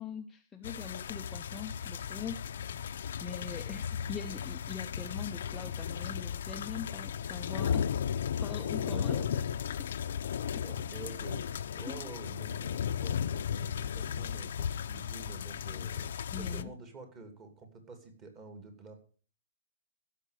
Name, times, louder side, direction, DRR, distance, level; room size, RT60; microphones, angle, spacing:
voice 1, 0.0-2.5 3.2-7.9 8.4-9.5 9.8-9.9 10.5-10.6 11.9-12.0 16.3-16.7, left 6 dB, 10° left, 3 dB, 0.7 m, -42 dB
sound 1, 0.6-16.6, left 8 dB, 70° left, 0.7 m, -35 dB
voice 2, 8.8-9.3 10.1-10.2 10.6-18.9, right 3 dB, 20° right, 5 dB, 2.8 m, -48 dB
16.0 x 6.6 x 6.6 m, 0.40 s
hypercardioid pair, 165°, 0 cm